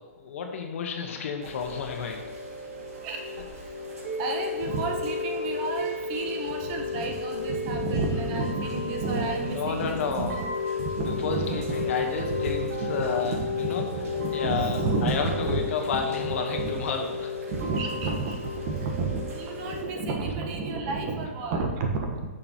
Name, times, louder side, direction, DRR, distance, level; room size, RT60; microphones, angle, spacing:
voice 1, 0.0-2.2 9.4-10.4 11.0-13.8 14.3-17.4, left 6 dB, 60° left, 3 dB, 1.3 m, -31 dB
Chime / Rain, 1.4-19.8, left 4 dB, 70° right, 2.2 m, -33 dB
voice 2, 4.2-10.5 10.8-11.7 12.2-12.3 12.8-15.6 15.9-16.0 16.6-16.8 17.5-22.3, right 4 dB, 35° right, 2 dB, 1.2 m, -31 dB
8.9 x 6.5 x 3.0 m, 1.3 s
hypercardioid pair, 145°, 8 cm